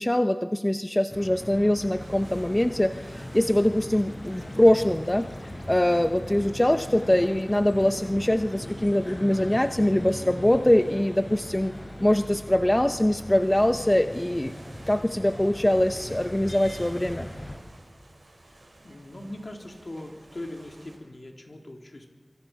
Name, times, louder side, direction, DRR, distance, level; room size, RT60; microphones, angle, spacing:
voice 1, 0.0-11.7 12.0-14.5 14.9-17.3, left 1 dB, 20° left, 8 dB, 0.8 m, -23 dB
sound 1, 1.1-17.6, left 1 dB, 35° left, 7.3 m, -39 dB
sound 2, 1.9-21.0, right 1 dB, 80° right, 6.2 m, -52 dB
sound 3, 3.9-8.3, left 2 dB, 85° left, 3.4 m, -54 dB
voice 2, 18.4-22.1, left 1 dB, 60° left, 2 dB, 3.4 m, -41 dB
25.0 x 25.0 x 5.9 m, 1.5 s
wide cardioid pair, 50°, 0 cm